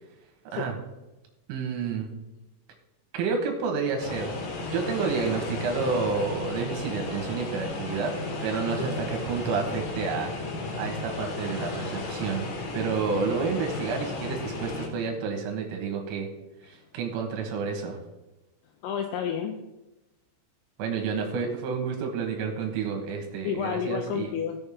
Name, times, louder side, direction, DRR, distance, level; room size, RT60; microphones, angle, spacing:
voice 1, 1.5-2.1 3.1-4.3 4.6-8.2 8.4-10.3 10.8-12.4 12.7-16.3 16.6-18.0 20.8-24.3, right 5 dB, 80° right, 2 dB, 3.8 m, -30 dB
sound 1, 4.0-14.9, left 3 dB, 65° left, 3.6 m, -34 dB
voice 2, 18.8-19.6 23.4-24.6, left 7 dB, 80° left, 2 dB, 3.3 m, -30 dB
16.5 x 6.9 x 3.6 m, 0.98 s
omnidirectional pair, 5.9 m